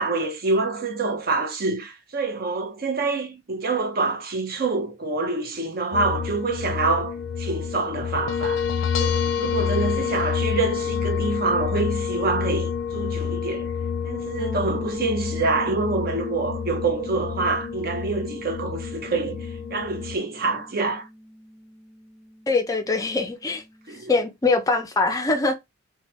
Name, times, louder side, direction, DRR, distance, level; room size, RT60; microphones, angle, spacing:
voice 1, 0.0-8.6 9.0-13.7 14.0-21.1 23.9-24.1, right 3 dB, 50° right, 0.7 m, -26 dB
sound 1, 5.9-20.2, left 7 dB, 80° left, 0.4 m, -28 dB
sound 2, 14.4-24.1, equal, 10° right, 0.9 m, -42 dB
voice 2, 22.5-23.6 24.1-25.5, left 3 dB, 20° left, 0.4 m, -22 dB
3.0 x 2.2 x 3.0 m
head